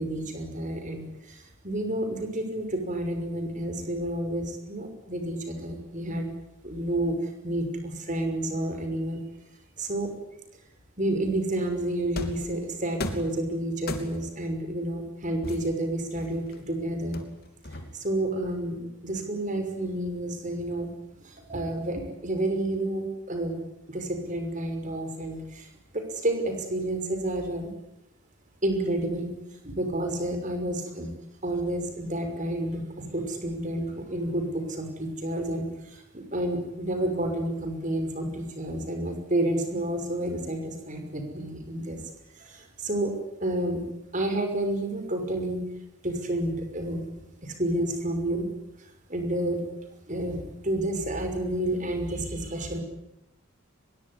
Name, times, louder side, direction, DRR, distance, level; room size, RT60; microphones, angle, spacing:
voice 1, 0.0-6.3 6.6-9.2 9.8-10.1 11.0-17.2 17.7-20.9 21.2-23.5 23.9-27.7 28.6-29.3 29.6-31.1 31.4-43.1 43.4-43.8 44.1-45.6 46.0-47.0 47.4-48.5 49.1-49.6 50.1-52.8, right 1 dB, 35° right, 6 dB, 5.9 m, -30 dB
sound 1, 12.2-12.5 13.0-13.4 13.9-14.4 15.4-16.6 17.1-18.1, left 1 dB, 45° left, 3.1 m, -35 dB
24.0 x 22.0 x 9.9 m, 0.83 s
head